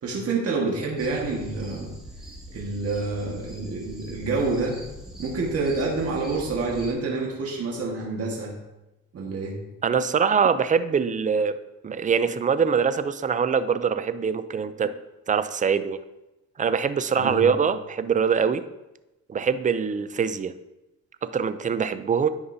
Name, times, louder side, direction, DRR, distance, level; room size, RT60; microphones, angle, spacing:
voice 1, 0.0-1.9 2.5-4.8 5.2-8.5 9.1-9.6 17.2-17.5, right 3 dB, 50° right, -2 dB, 1.6 m, -27 dB
sound 1, 1.0-6.9, equal, ahead, 2.1 m, -42 dB
voice 2, 9.8-11.6 11.8-14.9 15.3-16.0 16.6-18.6 19.3-20.5 21.2-22.3, right 6 dB, 25° right, 12 dB, 0.4 m, -23 dB
9.8 x 5.4 x 2.7 m, 0.97 s
cardioid pair, 90°, 30 cm